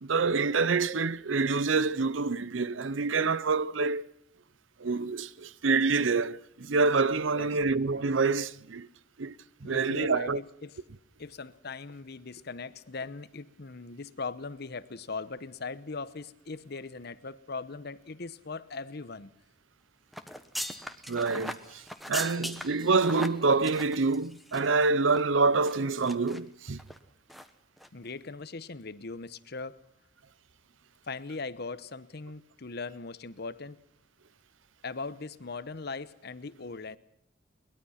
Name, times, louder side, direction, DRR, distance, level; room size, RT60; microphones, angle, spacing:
voice 1, 0.0-4.0 4.8-8.9 9.2-9.3 9.6-10.4 21.1-21.8 22.1-26.8, right 4 dB, 80° right, 0.8 m, -27 dB
voice 2, 9.6-10.8 11.2-19.3 27.9-29.8 31.1-33.8 34.8-37.0, left 4 dB, 55° left, 0.9 m, -39 dB
sound 1, 20.1-24.8 25.1-25.2 25.7-26.4 26.8-27.0 27.3-27.5 27.8-27.9, equal, ahead, 1.3 m, -39 dB
22.5 x 20.5 x 5.8 m
head